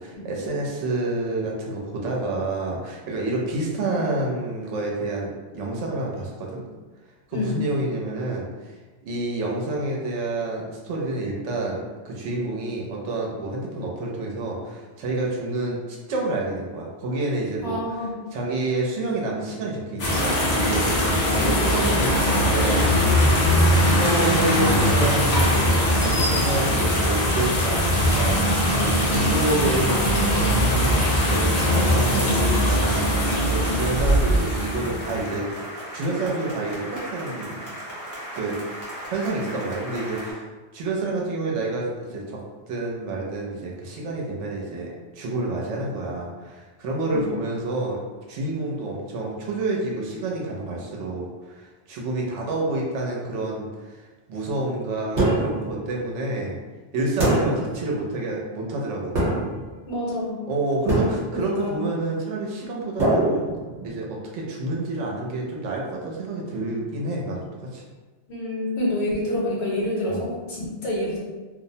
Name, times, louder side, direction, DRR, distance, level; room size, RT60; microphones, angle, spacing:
voice 1, 0.0-6.6 7.3-8.8 9.0-17.8 18.3-22.9 23.8-35.5 35.9-37.7 38.3-40.5 40.7-42.4 42.7-48.0 48.3-56.6 56.9-59.4 60.5-63.5 63.8-67.8 70.1-70.3, right 2 dB, 80° right, -2 dB, 0.9 m, -28 dB
voice 2, 17.6-18.2 21.1-21.4 33.6-33.8 47.1-47.2 59.9-60.4 61.3-61.8 68.3-71.2, left 1 dB, 70° left, -4 dB, 1.0 m, -28 dB
sound 1, 20.0-35.2, equal, 50° left, 0.5 m, -21 dB
sound 2, 32.8-40.3, right 1 dB, 20° right, 0.7 m, -37 dB
sound 3, 55.2-55.7 57.2-57.8 59.1-59.7 60.9-61.5 63.0-64.0, right 1 dB, 45° right, 0.9 m, -23 dB
2.5 x 2.0 x 2.6 m, 1.3 s
omnidirectional pair, 1.2 m